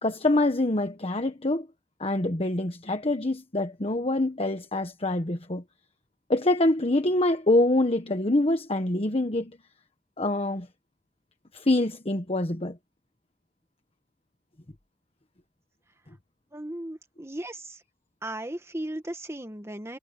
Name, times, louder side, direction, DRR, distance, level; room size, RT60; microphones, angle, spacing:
voice 1, 0.0-1.7 2.0-5.6 6.3-9.6 10.2-10.7 11.5-12.8, left 2 dB, 35° left, 1.3 m, -25 dB
voice 2, 16.5-17.8 18.2-20.0, right 1 dB, 15° right, 1.9 m, -36 dB
head